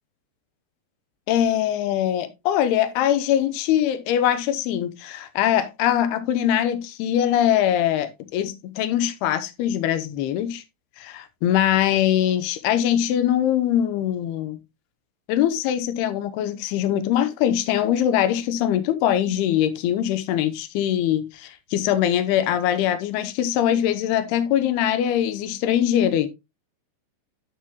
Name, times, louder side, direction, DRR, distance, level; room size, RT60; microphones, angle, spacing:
voice 1, 1.3-10.6 11.0-14.6 15.3-26.3, left 11 dB, 85° left, 2.8 m, -22 dB
9.8 x 7.5 x 2.3 m
omnidirectional pair, 4.5 m